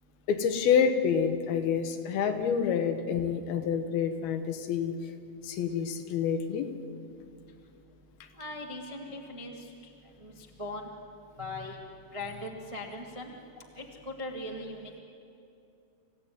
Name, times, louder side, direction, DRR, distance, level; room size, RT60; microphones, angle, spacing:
voice 1, 0.3-4.9 5.4-6.7, left 7 dB, 70° left, 7 dB, 2.9 m, -27 dB
voice 2, 8.3-9.7 10.2-10.9 11.4-11.8 12.1-13.3 13.7-15.0, left 1 dB, 30° right, 0 dB, 0.6 m, -40 dB
27.0 x 16.0 x 9.4 m, 2.6 s
omnidirectional pair, 4.7 m